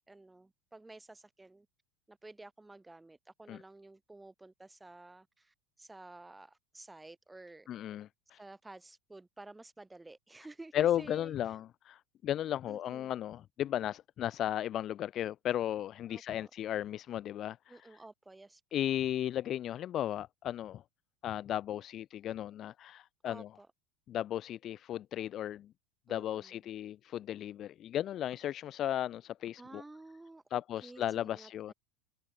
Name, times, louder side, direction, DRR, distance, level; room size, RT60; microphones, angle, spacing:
voice 1, 0.1-1.7 2.1-7.7 8.4-11.4 12.7-13.1 16.1-16.5 17.7-18.6 23.2-23.7 26.1-26.6 29.6-31.0 31.3-31.7, right 2 dB, 5° right, 2.3 m, -52 dB
voice 2, 7.7-8.4 10.7-17.8 18.7-20.8 21.2-23.5 24.1-25.7 26.1-29.8 30.5-31.7, left 11 dB, 35° left, 0.5 m, -35 dB
supercardioid pair, 145°, 0 cm